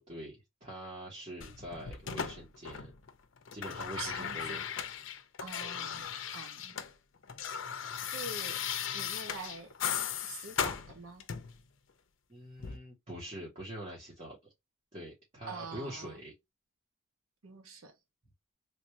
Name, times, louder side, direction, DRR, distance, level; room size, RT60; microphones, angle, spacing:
voice 1, 0.0-2.9 3.5-4.6 12.3-14.5 14.9-16.3, right 1 dB, 30° right, 1.2 m, -44 dB
sound 1, 1.4-3.1 3.4-6.9 7.2-11.6 12.6-12.8, left 8 dB, 65° left, 0.5 m, -37 dB
voice 2, 4.0-4.6 5.4-6.1 6.3-6.8 8.1-8.6 8.9-9.7 10.2-11.2 15.5-16.2 17.4-17.9, right 4 dB, 90° right, 0.9 m, -45 dB
3.4 x 2.6 x 3.0 m
head